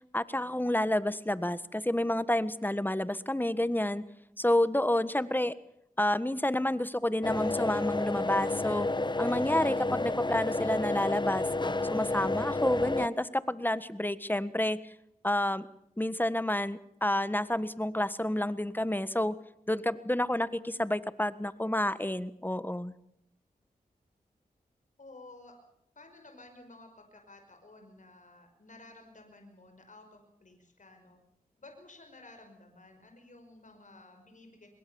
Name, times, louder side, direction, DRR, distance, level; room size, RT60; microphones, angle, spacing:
voice 1, 0.1-4.0 4.4-5.5 6.0-8.9 9.2-11.4 11.9-14.9 15.2-15.7 16.0-19.4 19.7-22.9, left 1 dB, 10° left, 15 dB, 1.5 m, -29 dB
sound 1, 7.2-13.1, left 2 dB, 30° left, 1.3 m, -31 dB
voice 2, 25.0-25.5 26.0-31.2 31.6-34.7, left 2 dB, 55° left, 5 dB, 5.4 m, -53 dB
23.5 x 21.5 x 7.1 m, 0.77 s
cardioid pair, 45°, 16 cm